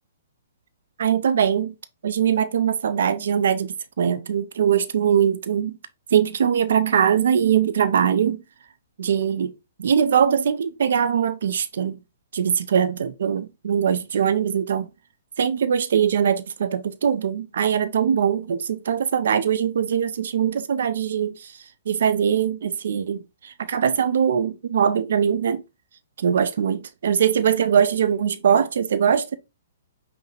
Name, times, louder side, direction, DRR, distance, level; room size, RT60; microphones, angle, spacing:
voice 1, 1.0-1.7 2.0-5.8 6.1-8.4 9.0-9.5 9.8-12.0 12.3-14.9 15.4-21.3 21.9-25.6 26.2-29.4, right 8 dB, 65° right, 0.4 m, -21 dB
5.4 x 2.1 x 3.1 m
hypercardioid pair, 125°, 0 cm